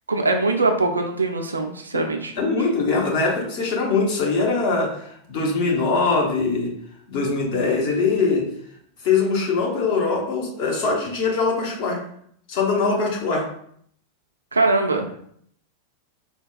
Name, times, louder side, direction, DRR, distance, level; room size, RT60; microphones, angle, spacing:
voice 1, 0.1-2.3 14.5-15.1, right 3 dB, 75° right, 4 dB, 0.4 m, -22 dB
voice 2, 2.4-6.7 7.1-8.4 9.0-12.0 12.5-13.4, left 4 dB, 45° left, -1 dB, 0.9 m, -22 dB
3.9 x 2.2 x 2.4 m, 0.66 s
figure-of-eight pair, 90°, 0 cm